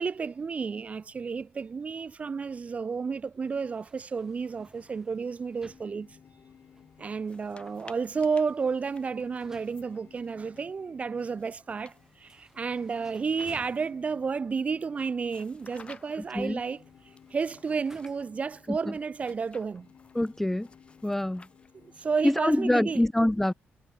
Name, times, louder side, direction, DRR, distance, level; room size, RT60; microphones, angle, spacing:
voice 1, 0.0-6.2 7.0-16.8 17.3-19.9 21.8-23.1, right 5 dB, 30° right, 0.8 m, -31 dB
sound 1, 3.4-18.5, right 2 dB, 10° right, 4.2 m, -60 dB
sound 2, 4.6-22.5, left 7 dB, 50° left, 8.0 m, -58 dB
sound 3, 7.2-10.6 11.2-14.1 15.2-16.4 17.2-18.2 19.2-22.0, left 4 dB, 25° left, 2.4 m, -56 dB
voice 2, 20.2-20.7 21.0-21.4 22.2-23.5, left 1 dB, 5° left, 0.5 m, -25 dB
cardioid pair, 130°, 4 cm